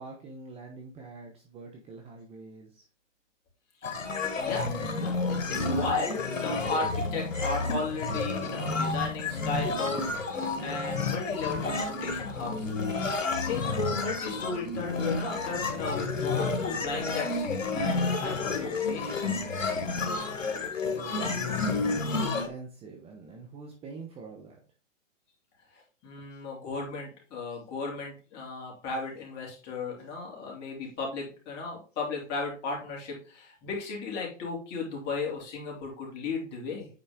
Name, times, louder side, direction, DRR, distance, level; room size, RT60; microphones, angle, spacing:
voice 1, 0.0-2.9 20.8-24.6, right 3 dB, 15° right, 2 dB, 0.9 m, -45 dB
sound 1, 3.8-22.5, left 3 dB, 85° left, 1.7 m, -30 dB
voice 2, 4.4-12.9 13.4-19.4 25.7-36.9, left 3 dB, 25° left, -2 dB, 2.9 m, -35 dB
8.9 x 3.9 x 3.6 m, 0.36 s
hypercardioid pair, 135°, 38 cm